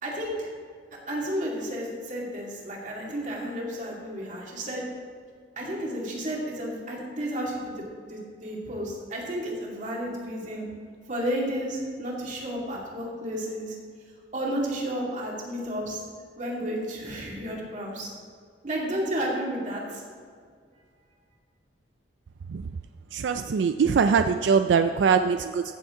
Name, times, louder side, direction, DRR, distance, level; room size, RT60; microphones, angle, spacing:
voice 1, 0.0-0.5 1.1-4.8 5.6-10.7 11.1-13.8 14.3-16.0 16.4-18.1 18.6-20.0, equal, 45° right, -3 dB, 2.3 m, -32 dB
voice 2, 23.1-25.6, right 6 dB, 90° right, 9 dB, 0.4 m, -22 dB
15.0 x 7.1 x 3.7 m, 2.1 s
head